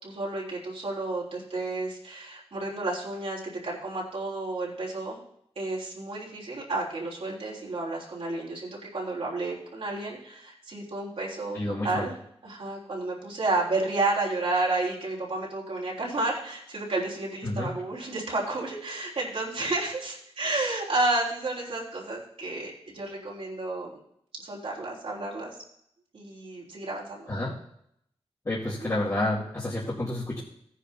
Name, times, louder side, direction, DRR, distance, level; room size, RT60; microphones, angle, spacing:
voice 1, 0.0-5.2 5.5-11.6 11.8-12.1 12.4-24.0 24.4-25.6 26.1-27.3 28.8-28.9, right 2 dB, 70° right, -5 dB, 3.5 m, -31 dB
voice 2, 11.5-12.1 17.4-17.7 27.3-27.5 28.4-30.4, left 1 dB, 35° left, -9 dB, 2.3 m, -29 dB
17.5 x 9.9 x 2.8 m, 0.72 s
wide cardioid pair, 105°, 10 cm